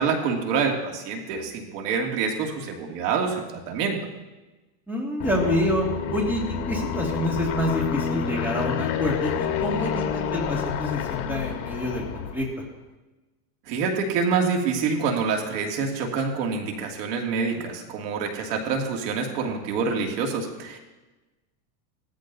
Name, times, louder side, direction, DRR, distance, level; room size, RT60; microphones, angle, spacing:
voice 1, 0.0-4.0 13.7-20.8, right 5 dB, 70° right, 1 dB, 2.7 m, -26 dB
voice 2, 4.9-12.5, left 1 dB, 5° right, -3 dB, 2.2 m, -27 dB
Aircraft, 5.2-12.5, left 7 dB, 55° left, 1.7 m, -29 dB
18.5 x 14.0 x 2.8 m, 1.1 s
supercardioid pair, 150°, 49 cm